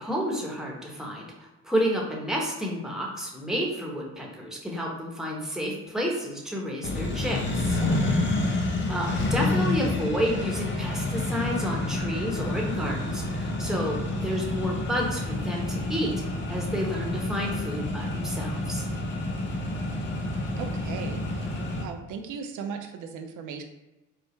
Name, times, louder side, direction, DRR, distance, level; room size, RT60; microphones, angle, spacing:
voice 1, 0.0-7.8 8.9-16.1 16.5-18.9, equal, ahead, -2 dB, 0.9 m, -30 dB
Accelerating revving vroom, 6.8-21.8, left 2 dB, 40° left, 0.7 m, -29 dB
voice 2, 7.7-8.1 20.6-23.6, right 6 dB, 80° right, 5 dB, 0.5 m, -38 dB
4.7 x 2.0 x 3.1 m, 1.0 s
cardioid pair, 90°, 30 cm